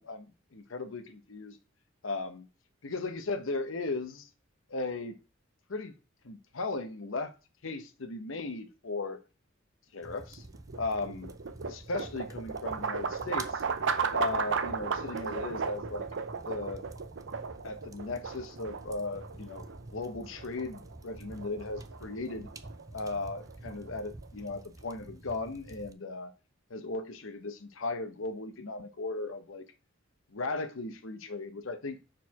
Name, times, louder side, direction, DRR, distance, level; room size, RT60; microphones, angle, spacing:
voice 1, 0.0-1.6 2.0-2.5 2.8-4.3 4.7-5.2 5.7-5.9 6.2-7.3 7.6-9.2 9.9-10.4 10.7-11.3 11.6-13.6 14.1-16.1 16.4-16.8 17.6-19.7 19.9-22.5 22.9-26.3 26.7-29.6 30.3-32.0, left 3 dB, 80° left, 0.9 m, -37 dB
sound 1, 10.0-25.9, right 2 dB, 15° right, 0.4 m, -49 dB
sound 2, 10.3-24.4, right 5 dB, 65° right, 0.6 m, -36 dB
4.6 x 4.2 x 5.7 m
head